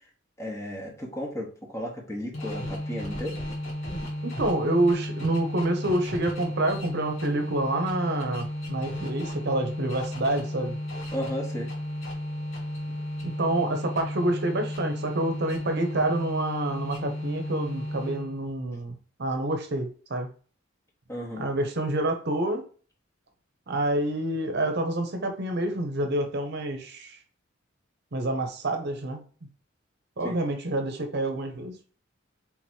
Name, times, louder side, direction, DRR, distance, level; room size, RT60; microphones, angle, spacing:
voice 1, 0.4-3.3 11.1-11.7 21.1-21.4 30.2-30.3, equal, 15° left, -1 dB, 1.2 m, -34 dB
sound 1, 2.3-18.5, left 1 dB, 85° left, 1.8 m, -34 dB
voice 2, 4.2-10.8 13.2-20.3 21.4-22.7 23.7-27.2 28.1-29.2 30.2-31.8, right 1 dB, 55° right, 6 dB, 0.8 m, -28 dB
3.7 x 3.0 x 4.5 m, 0.41 s
head